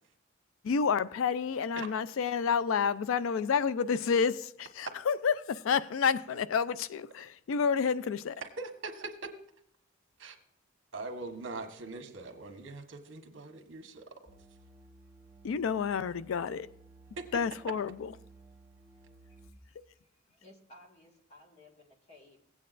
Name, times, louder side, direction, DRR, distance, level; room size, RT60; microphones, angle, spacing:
voice 1, 0.6-8.4 15.4-16.7 17.3-18.1, left 6 dB, 85° left, 0.4 m, -29 dB
voice 2, 8.4-9.3 10.2-10.4 10.9-14.2 17.2-17.3, right 3 dB, 65° right, 1.3 m, -42 dB
sound 1, 14.3-19.5, right 2 dB, 10° right, 0.9 m, -57 dB
voice 3, 20.3-22.4, left 1 dB, 35° left, 1.8 m, -57 dB
17.0 x 8.6 x 2.5 m
head